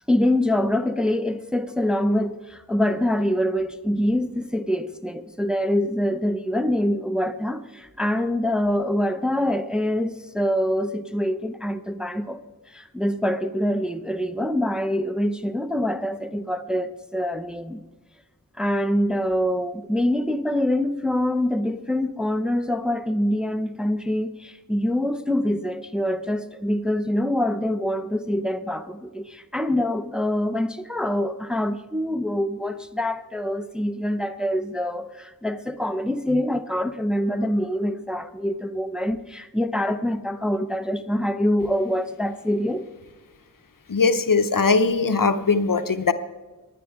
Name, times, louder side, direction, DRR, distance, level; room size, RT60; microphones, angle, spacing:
voice 1, 0.1-12.4 12.7-17.8 18.6-42.8, left 1 dB, ahead, 0.6 m, -25 dB
voice 2, 43.9-46.1, left 4 dB, 65° left, 0.7 m, -20 dB
19.0 x 10.0 x 3.5 m
wide cardioid pair, 45°, 36 cm